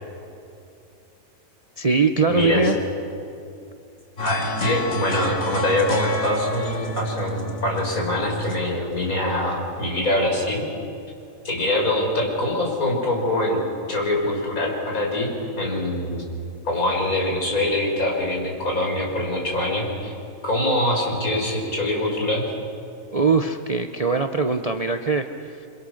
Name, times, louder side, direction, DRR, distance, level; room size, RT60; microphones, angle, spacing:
voice 1, 1.8-2.8 23.1-25.7, right 4 dB, 35° right, 6 dB, 0.7 m, -22 dB
voice 2, 2.3-2.6 4.2-10.7 11.4-13.6 13.9-15.3 15.6-16.2 16.6-20.1 20.4-22.5, left 1 dB, 70° left, -1 dB, 5.8 m, -24 dB
sound 1, 4.2-9.5, left 1 dB, 45° left, 2.3 m, -29 dB
28.5 x 25.0 x 6.5 m, 2.6 s
omnidirectional pair, 1.5 m